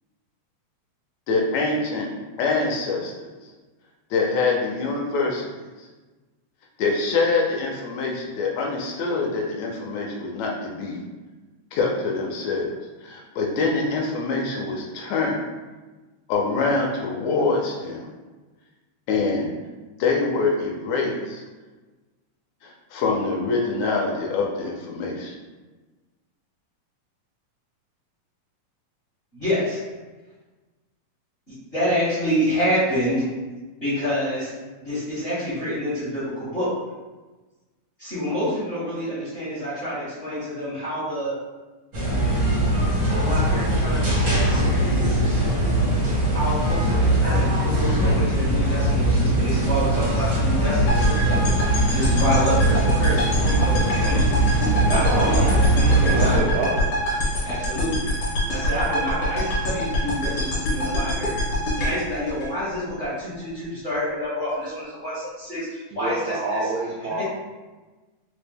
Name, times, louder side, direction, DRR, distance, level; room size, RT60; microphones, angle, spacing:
voice 1, 1.3-2.1 2.4-3.3 4.1-5.5 5.8-5.9 6.8-11.0 11.7-12.7 13.0-15.4 16.3-18.1 19.1-19.5 20.0-21.4 22.6-25.4, left 3 dB, 80° left, 0 dB, 1.8 m, -25 dB
voice 2, 29.3-29.8 31.5-33.2 33.8-34.5 34.8-36.7 38.0-41.4 43.1-45.5 46.3-51.4 51.9-54.2 54.9-55.4 55.7-56.5 57.4-58.1 58.5-61.4 61.8-66.7 67.0-67.2, equal, 45° left, -12 dB, 0.8 m, -28 dB
sound 1, 41.9-56.4, right 1 dB, 60° right, 0.9 m, -21 dB
sound 2, 50.9-63.1, equal, 65° left, 1.5 m, -25 dB
voice 3, 54.9-55.5 56.0-56.9 65.9-67.2, right 2 dB, 80° right, -4 dB, 1.5 m, -27 dB
4.8 x 2.1 x 3.3 m, 1.2 s
omnidirectional pair, 3.4 m